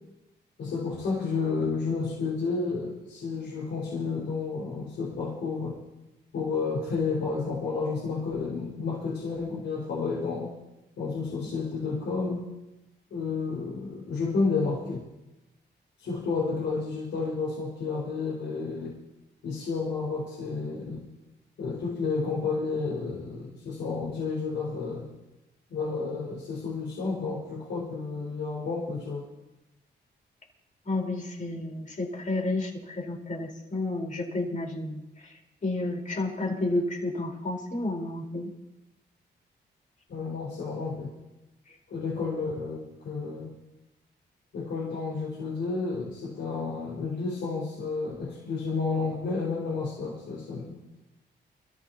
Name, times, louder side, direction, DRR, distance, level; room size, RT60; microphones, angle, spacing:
voice 1, 0.6-5.8 6.3-10.5 11.0-12.4 13.1-15.1 16.0-19.0 19.4-21.1 21.6-25.1 25.7-29.2 40.1-41.1 41.9-43.5 44.5-51.0, left 4 dB, 85° left, -6 dB, 5.5 m, -31 dB
voice 2, 30.8-35.3 35.6-38.5, left 2 dB, 45° left, 0 dB, 4.6 m, -31 dB
27.5 x 15.0 x 3.0 m, 0.95 s
cardioid pair, 75°, 19 cm